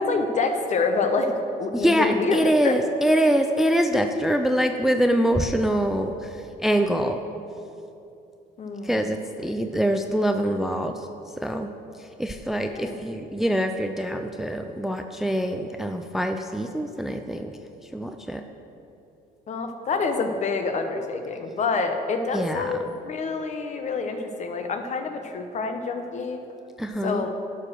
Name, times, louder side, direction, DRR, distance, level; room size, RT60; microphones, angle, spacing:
voice 1, 0.0-1.3 1.6-2.8 8.6-9.1 12.7-13.0 19.5-26.4 27.0-27.3, left 4 dB, 45° left, 6 dB, 0.9 m, -27 dB
voice 2, 1.7-7.2 8.8-11.1 11.4-11.7 12.0-17.5 17.9-18.4 22.3-22.7 26.8-27.2, equal, ahead, 6 dB, 0.4 m, -24 dB
12.0 x 5.0 x 6.2 m, 2.8 s
cardioid pair, 110°, 17 cm